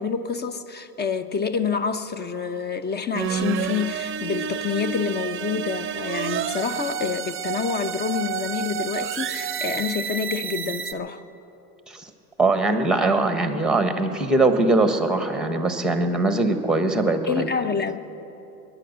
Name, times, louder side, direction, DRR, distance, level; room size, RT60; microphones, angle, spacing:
voice 1, 0.0-11.2 17.2-18.0, left 6 dB, 20° left, 12 dB, 0.8 m, -27 dB
sound 1, 3.1-10.9, right 8 dB, 25° right, 0.7 m, -30 dB
voice 2, 12.4-17.5, right 2 dB, ahead, 7 dB, 1.5 m, -21 dB
21.0 x 10.0 x 6.7 m, 3.0 s
hypercardioid pair, 95°, 47 cm